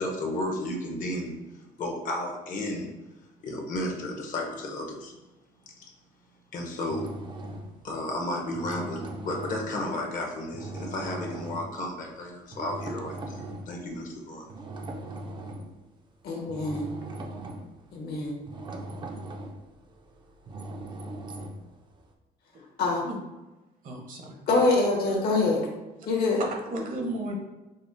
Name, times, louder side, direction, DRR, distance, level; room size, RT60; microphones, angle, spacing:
voice 1, 0.0-2.9 3.4-5.1 5.8-5.9 6.5-7.2 7.8-14.5, left 1 dB, 50° left, 1 dB, 0.7 m, -33 dB
sound 1, 6.9-7.9 8.4-10.1 10.5-11.7 12.5-13.8 14.5-15.8 16.3-22.1, right 1 dB, 25° right, 0.4 m, -39 dB
voice 2, 16.2-16.9 17.9-18.3 22.8-23.1 24.5-25.7 26.1-26.4, left 3 dB, 70° left, -1 dB, 1.0 m, -25 dB
voice 3, 23.8-24.4 26.4-27.4, right 1 dB, 55° right, 2 dB, 0.8 m, -34 dB
5.2 x 2.0 x 2.5 m, 1.1 s
cardioid pair, 110°, 17 cm